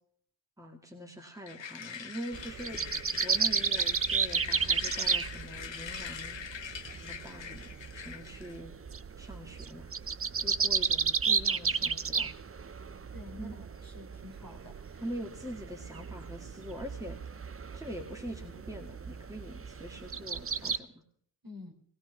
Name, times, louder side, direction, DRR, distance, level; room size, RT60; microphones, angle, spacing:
voice 1, 0.6-6.4 6.9-8.7 9.2-9.9 10.4-12.3 13.4-13.6 15.0-17.2 17.7-21.0, equal, 5° right, 2 dB, 2.1 m, -43 dB
sound 1, 1.5-8.6, left 7 dB, 80° left, 0.9 m, -43 dB
sound 2, 2.3-20.8, right 5 dB, 30° right, 0.5 m, -33 dB
voice 2, 13.1-15.0 21.4-21.7, left 3 dB, 50° right, 1 dB, 3.6 m, -48 dB
20.0 x 16.5 x 3.5 m, 0.62 s
wide cardioid pair, 45°, 44 cm